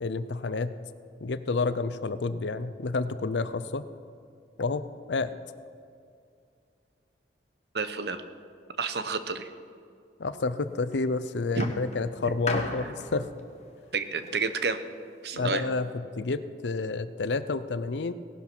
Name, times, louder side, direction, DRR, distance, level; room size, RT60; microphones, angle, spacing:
voice 1, 0.0-0.7 1.2-3.8 4.6-4.8 5.1-5.3 10.2-13.3 15.3-15.9 16.2-18.1, left 3 dB, 90° left, 13 dB, 0.6 m, -29 dB
voice 2, 7.7-8.2 8.8-9.5 11.6-11.7 13.9-14.8 15.2-15.7, right 4 dB, 70° right, 10 dB, 0.9 m, -30 dB
sound 1, 10.6-11.0 11.6-14.8 15.6-15.7, left 2 dB, 40° left, 1.5 m, -37 dB
17.5 x 11.5 x 6.1 m, 2.3 s
head